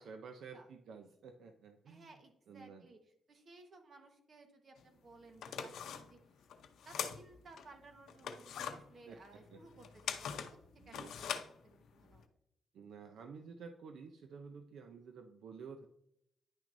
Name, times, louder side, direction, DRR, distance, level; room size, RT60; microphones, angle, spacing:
voice 1, 0.0-2.1 2.5-2.9 9.1-9.6 10.8-11.1 12.7-15.9, right 5 dB, 70° right, 6 dB, 0.5 m, -51 dB
voice 2, 1.9-3.0 3.3-6.5 6.8-10.6 10.8-12.2, right 3 dB, 45° right, 5 dB, 1.2 m, -59 dB
sound 1, 4.8-4.9 5.3-7.7 8.1-12.2, left 8 dB, 80° left, 0.7 m, -42 dB
9.9 x 6.0 x 2.6 m, 0.77 s
cardioid pair, 130°, 0 cm